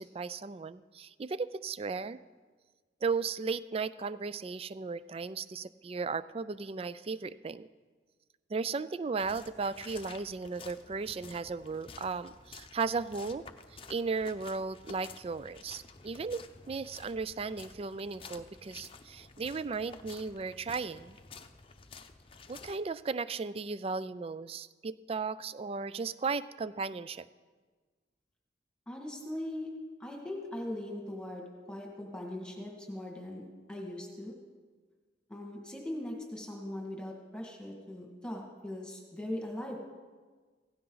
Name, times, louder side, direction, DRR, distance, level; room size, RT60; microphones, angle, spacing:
voice 1, 0.0-2.2 3.0-7.7 8.5-13.5 13.9-21.2 22.5-27.3, right 4 dB, 30° right, 16 dB, 0.3 m, -36 dB
sound 1, 9.2-22.8, left 4 dB, 30° left, 0.7 m, -52 dB
voice 2, 28.9-29.7 30.0-33.4 33.7-34.3 35.3-39.8, left 1 dB, 5° left, -1 dB, 1.9 m, -40 dB
16.5 x 16.0 x 4.0 m, 1.4 s
head